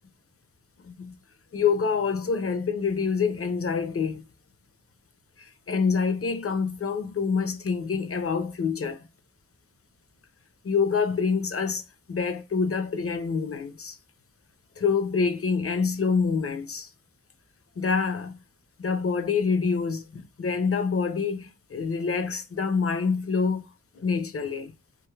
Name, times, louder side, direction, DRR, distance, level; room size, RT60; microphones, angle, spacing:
voice 1, 0.8-1.2 1.5-4.2 5.4-9.1 10.6-11.8 12.1-14.0 14.8-16.9 17.8-18.4 18.8-23.7 24.0-24.7, left 5 dB, 40° left, 0.6 m, -26 dB
2.6 x 2.3 x 3.1 m
wide cardioid pair, 65°, 34 cm